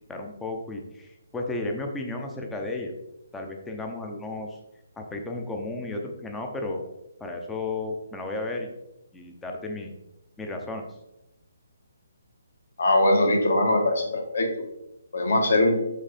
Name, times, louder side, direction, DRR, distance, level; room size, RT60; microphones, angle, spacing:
voice 1, 0.1-2.9 3.3-4.6 5.0-6.8 7.2-8.7 9.1-9.9 10.4-10.8, left 2 dB, 5° left, 2 dB, 0.6 m, -33 dB
voice 2, 12.8-14.5 15.1-15.8, left 1 dB, 60° left, 3 dB, 1.6 m, -21 dB
6.3 x 5.2 x 4.1 m, 0.88 s
hypercardioid pair, 170°, 0 cm